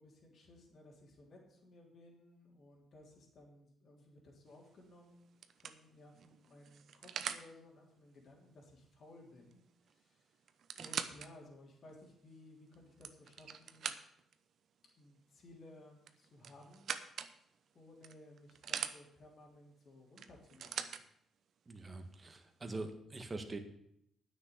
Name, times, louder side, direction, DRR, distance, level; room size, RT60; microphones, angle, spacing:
voice 1, 0.0-5.2 5.6-10.5 10.8-13.9 15.0-16.9 17.7-20.9, left 1 dB, 55° left, -1 dB, 3.2 m, -59 dB
sound 1, 4.5-4.8 5.4-7.5 9.5-9.6 9.9-10.0 10.5-11.3 11.9-12.0 12.7-14.3 16.0-17.3 18.0-19.0 20.2-21.0 22.0-22.1, right 7 dB, 60° right, 0.8 m, -42 dB
voice 2, 21.7-23.6, right 2 dB, 25° right, 6 dB, 1.7 m, -44 dB
9.5 x 6.5 x 8.6 m, 0.74 s
cardioid pair, 90°, 0 cm